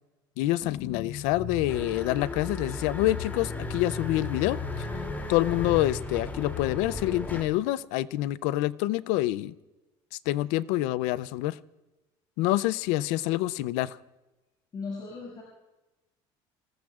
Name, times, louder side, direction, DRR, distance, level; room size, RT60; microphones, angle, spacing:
voice 1, 0.4-4.9 5.3-9.6 10.3-11.6 12.4-14.0, left 16 dB, 80° left, 19 dB, 0.5 m, -27 dB
sound 1, 0.6-6.8, left 7 dB, 65° left, 1.2 m, -38 dB
sound 2, 1.7-7.4, left 2 dB, 15° left, 2.8 m, -37 dB
voice 2, 14.7-15.4, left 4 dB, 40° left, -4 dB, 6.8 m, -37 dB
26.5 x 18.5 x 2.4 m, 1.1 s
supercardioid pair, 110°, 11 cm